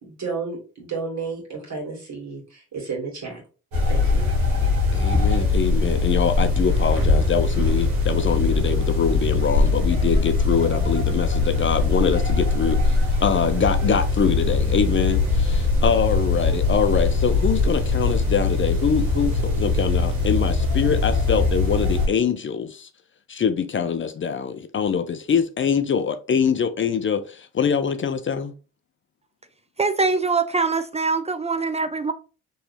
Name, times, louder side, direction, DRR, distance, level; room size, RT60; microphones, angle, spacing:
voice 1, 0.0-3.4 3.9-4.3, right 4 dB, 55° right, 1.8 m, -32 dB
sound 1, 3.7-22.1, left 3 dB, 80° right, 1.2 m, -21 dB
voice 2, 4.9-22.9 23.3-28.5, left 6 dB, 35° left, 0.5 m, -24 dB
voice 3, 29.8-32.1, right 4 dB, 20° right, 0.4 m, -23 dB
3.1 x 2.7 x 3.2 m
hypercardioid pair, 45°, 34 cm